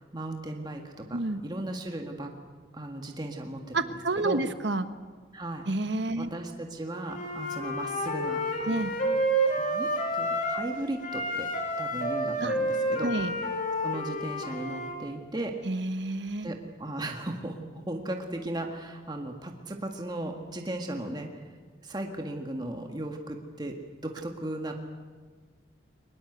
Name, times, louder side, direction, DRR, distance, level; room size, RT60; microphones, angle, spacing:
voice 1, 0.0-2.3 2.7-3.9 4.2-4.4 5.3-5.7 6.2-9.1 9.6-11.5 11.8-13.3 13.8-15.6 16.4-17.6 17.9-21.3 21.8-23.8 24.0-24.7, right 1 dB, 20° right, 3 dB, 1.8 m, -36 dB
voice 2, 1.1-1.4 3.7-4.9 5.7-6.3 8.7-8.9 12.4-12.6 13.0-13.3 15.6-16.5, right 2 dB, 65° right, 10 dB, 1.3 m, -29 dB
Wind instrument woodwind instrument, 7.1-10.7 11.0-14.9, right 1 dB, 40° left, 3.1 m, -29 dB
23.0 x 21.0 x 8.1 m, 1.5 s
head